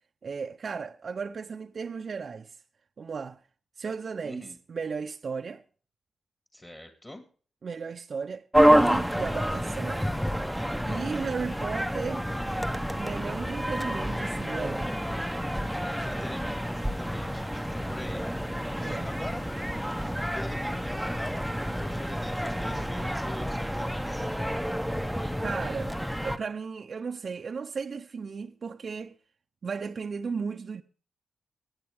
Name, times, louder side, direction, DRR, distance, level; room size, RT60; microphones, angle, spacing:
voice 1, 0.2-2.6 3.0-3.4 3.8-5.6 7.6-10.1 10.8-12.3 13.0-14.9 18.8-19.1 25.4-25.9 26.2-29.1 29.6-30.8, right 5 dB, 55° right, 0.6 m, -35 dB
voice 2, 4.2-4.6 6.5-7.2 10.9-11.3 15.6-24.3, left 1 dB, 20° left, 1.9 m, -44 dB
sound 1, 8.5-26.4, equal, ahead, 0.7 m, -28 dB
22.0 x 9.0 x 3.4 m
cardioid pair, 85°, 0 cm